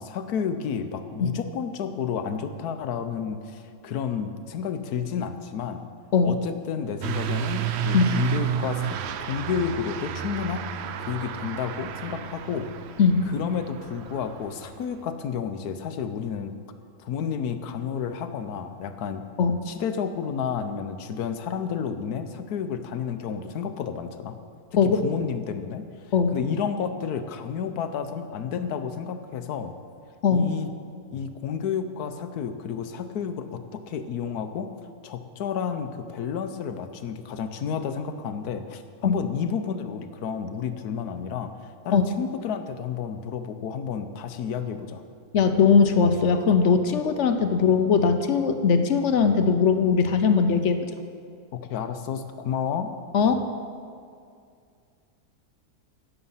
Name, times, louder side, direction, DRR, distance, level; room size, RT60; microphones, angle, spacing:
voice 1, 0.0-5.8 6.2-10.6 11.0-12.7 13.2-16.5 17.0-19.3 19.7-24.4 24.7-29.7 30.3-30.7 31.1-34.7 35.0-41.5 41.8-45.0 51.5-52.9, left 7 dB, 80° left, 9 dB, 1.3 m, -31 dB
Truck / Accelerating revving vroom, 7.0-15.0, right 9 dB, 65° right, 0.6 m, -31 dB
voice 2, 13.0-13.3 19.4-19.6 24.8-25.0 26.1-26.3 30.2-30.5 39.0-39.2 41.9-42.0 45.3-50.9 53.1-53.5, left 5 dB, 55° left, 8 dB, 1.0 m, -20 dB
17.0 x 7.1 x 5.6 m, 2.3 s
omnidirectional pair, 1.6 m